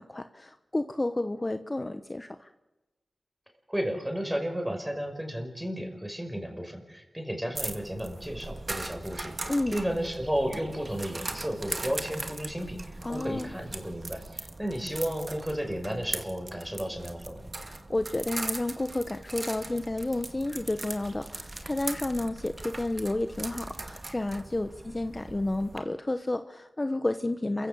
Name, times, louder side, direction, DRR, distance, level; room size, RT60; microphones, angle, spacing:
voice 1, 0.0-2.5 9.5-9.8 13.0-13.5 17.6-27.7, left 2 dB, 30° left, 9 dB, 1.0 m, -31 dB
voice 2, 3.7-17.5, equal, 10° right, 5 dB, 5.5 m, -33 dB
sound 1, 7.6-25.8, right 2 dB, 45° right, 2.1 m, -39 dB
28.0 x 15.5 x 6.9 m, 1.1 s
cardioid pair, 50°, 0 cm